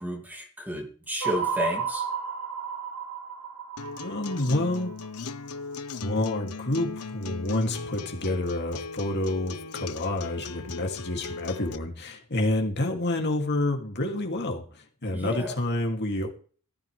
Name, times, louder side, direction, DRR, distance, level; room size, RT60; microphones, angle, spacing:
voice 1, 0.0-2.1 15.1-15.6, equal, 10° right, 2.5 m, -32 dB
sound 1, 1.2-5.5, right 6 dB, 85° right, 6.0 m, -33 dB
Acoustic guitar, 3.8-11.8, left 4 dB, 80° left, 1.0 m, -38 dB
voice 2, 4.0-4.9 6.0-14.6 15.0-16.3, left 1 dB, 50° left, 2.7 m, -28 dB
16.0 x 14.0 x 3.4 m
head